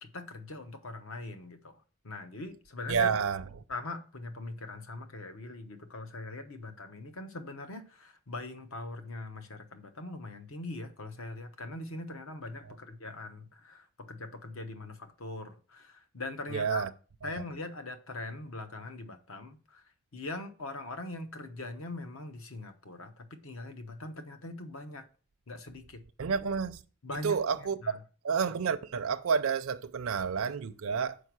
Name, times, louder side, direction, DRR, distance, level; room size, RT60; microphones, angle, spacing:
voice 1, 0.0-3.1 3.7-16.9 17.2-19.8 20.1-25.1 25.5-26.0 27.0-28.0, left 2 dB, 65° left, 0.9 m, -42 dB
voice 2, 2.9-3.4 16.5-16.9 17.2-17.4 26.2-26.8 27.2-27.8 28.2-31.2, right 6 dB, 65° right, 0.5 m, -29 dB
6.5 x 5.1 x 6.0 m
head